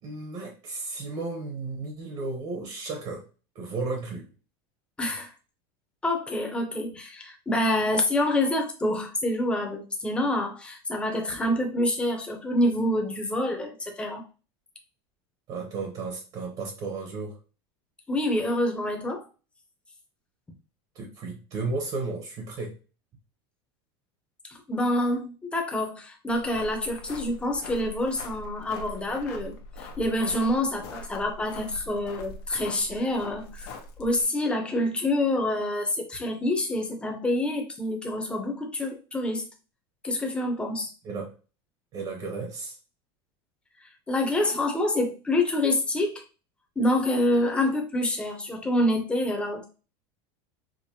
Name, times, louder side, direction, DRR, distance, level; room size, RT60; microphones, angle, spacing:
voice 1, 0.0-3.2 3.5-4.3 15.5-17.4 20.9-22.7 41.0-41.3 41.9-42.8, right 3 dB, 40° right, 2 dB, 0.9 m, -34 dB
voice 2, 5.0-5.3 6.0-14.2 18.1-19.3 24.7-33.7 34.0-39.4 40.0-40.9 44.1-46.2 46.8-49.6, left 1 dB, 10° left, 3 dB, 0.7 m, -27 dB
sound 1, 26.3-34.2, left 2 dB, 85° left, 0.9 m, -42 dB
4.9 x 2.0 x 2.8 m, 0.34 s
supercardioid pair, 150°, 13 cm